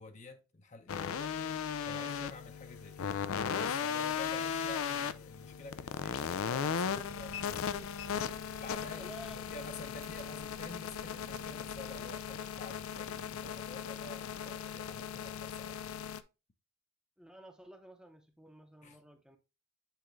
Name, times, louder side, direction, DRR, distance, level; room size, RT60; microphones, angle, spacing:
voice 1, 0.0-1.3 1.8-3.2 3.6-7.9 8.6-15.9 18.8-19.0, left 2 dB, 35° left, 0.7 m, -50 dB
sound 1, 0.9-16.2, left 7 dB, 80° left, 0.4 m, -37 dB
sound 2, 6.9-12.3, right 4 dB, 85° right, 0.6 m, -57 dB
voice 2, 8.9-9.4 14.3-14.5 17.2-19.4, right 1 dB, 5° right, 0.7 m, -52 dB
8.2 x 3.8 x 3.1 m
head